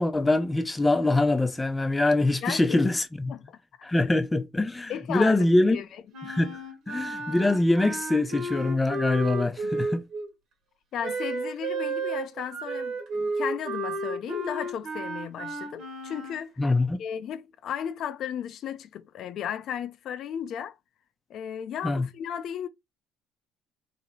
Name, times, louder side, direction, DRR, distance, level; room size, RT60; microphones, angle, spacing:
voice 1, 0.0-3.3 3.8-5.8 6.2-10.0 16.6-17.0 21.8-22.1, left 2 dB, 10° left, 0.8 m, -24 dB
voice 2, 2.4-2.8 3.3-3.6 4.9-5.8 9.6-9.7 10.9-16.5 17.0-20.8 21.3-22.7, left 9 dB, 55° left, 0.6 m, -35 dB
Wind instrument woodwind instrument, 6.1-10.3 11.0-16.4, right 2 dB, 65° right, 1.5 m, -33 dB
3.0 x 2.9 x 4.1 m
cardioid pair, 110°, 0 cm